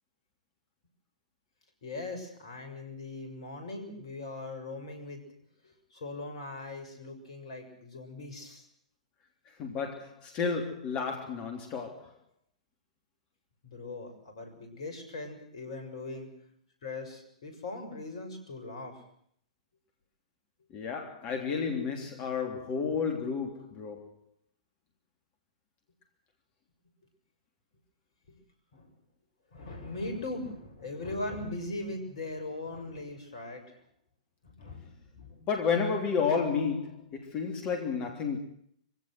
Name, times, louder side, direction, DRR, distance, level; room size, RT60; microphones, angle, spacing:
voice 1, 1.8-5.3 5.6-8.6 13.6-16.3 16.8-19.0 28.3-28.4 28.7-28.9 29.5-33.8 34.4-35.5, left 2 dB, 55° left, 6.7 m, -40 dB
voice 2, 9.6-12.1 20.7-24.1 35.4-38.4, left 5 dB, 30° left, 3.2 m, -31 dB
24.5 x 17.0 x 7.9 m
figure-of-eight pair, 110°, 4 cm